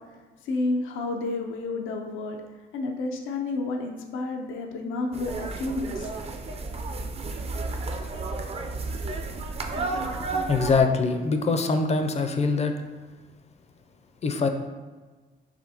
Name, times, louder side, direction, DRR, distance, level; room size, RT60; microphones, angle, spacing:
voice 1, 0.4-2.4 2.7-6.1, left 2 dB, 85° left, 3 dB, 0.5 m, -30 dB
sound 1, 5.1-10.8, right 3 dB, 30° right, 0.4 m, -32 dB
voice 2, 10.5-12.7 14.2-14.5, left 4 dB, 35° left, 6 dB, 0.4 m, -23 dB
4.9 x 3.2 x 2.8 m, 1.3 s
cardioid pair, 90°, 20 cm